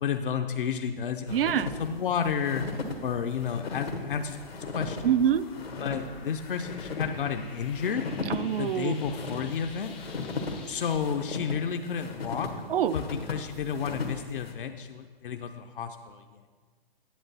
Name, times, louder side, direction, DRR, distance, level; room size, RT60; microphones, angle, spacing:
voice 1, 0.0-1.4 1.8-5.2 5.8-8.1 8.6-9.9 10.7-12.5 12.9-16.4, left 7 dB, 60° left, 5 dB, 0.6 m, -31 dB
sound 1, 1.3-14.5, left 3 dB, 85° left, 1.4 m, -37 dB
voice 2, 1.3-1.7 5.0-5.4 8.3-9.0 12.7-12.9, right 9 dB, 70° right, 14 dB, 0.5 m, -25 dB
sound 2, 4.0-11.0, left 5 dB, 10° left, 0.3 m, -50 dB
10.0 x 7.3 x 4.1 m, 1.5 s
hypercardioid pair, 135°, 30 cm